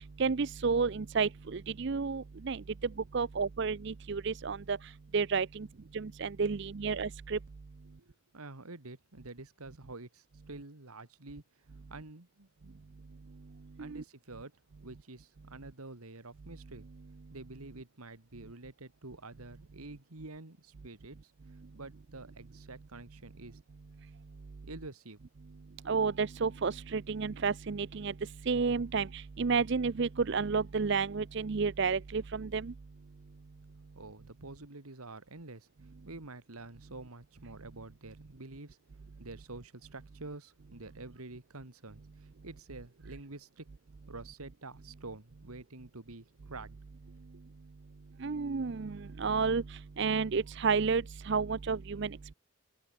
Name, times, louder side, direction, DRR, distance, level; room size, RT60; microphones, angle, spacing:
voice 1, 0.2-2.6 3.1-4.8 5.1-5.7 5.9-7.4 13.8-14.0 25.9-28.1 28.5-32.7 48.2-52.2, right 5 dB, 55° right, 0.5 m, -31 dB
voice 2, 8.0-12.8 13.8-16.9 17.3-23.6 24.6-25.2 33.9-35.7 36.0-38.8 39.2-43.7 44.1-46.8 47.1-47.4, right 2 dB, 90° right, 2.2 m, -48 dB
head